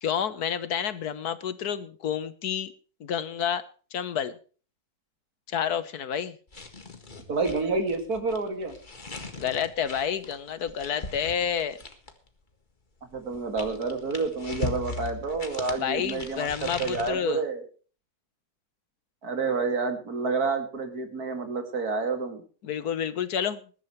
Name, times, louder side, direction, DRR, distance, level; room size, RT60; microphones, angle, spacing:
voice 1, 0.0-2.7 3.0-3.6 3.9-4.4 5.5-6.4 9.4-11.8 15.8-17.4 22.6-23.6, left 8 dB, 80° left, 14 dB, 1.6 m, -29 dB
sound 1, 6.5-12.3 13.1-17.1, left 3 dB, 30° left, 1.9 m, -39 dB
voice 2, 7.3-8.7 13.1-17.6 19.2-22.4, right 4 dB, 75° right, 7 dB, 2.8 m, -29 dB
20.5 x 11.5 x 3.2 m, 0.38 s
omnidirectional pair, 1.6 m